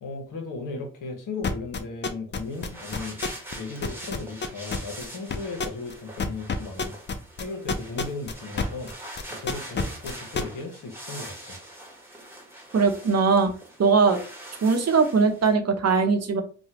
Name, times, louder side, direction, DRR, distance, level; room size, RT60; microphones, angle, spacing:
voice 1, 0.0-3.2 3.5-7.0 7.4-8.9 9.4-11.6, left 3 dB, 70° left, 3 dB, 1.1 m, -36 dB
sound 1, 1.4-3.6 3.8-8.9 9.2-10.4, left 4 dB, 35° left, 0.5 m, -28 dB
sound 2, 2.4-15.5, right 1 dB, 5° right, 1.2 m, -43 dB
voice 2, 12.7-13.5 13.8-14.2 14.6-16.4, right 5 dB, 50° right, 6 dB, 0.8 m, -20 dB
3.1 x 2.3 x 2.8 m, 0.39 s
supercardioid pair, 50°, 33 cm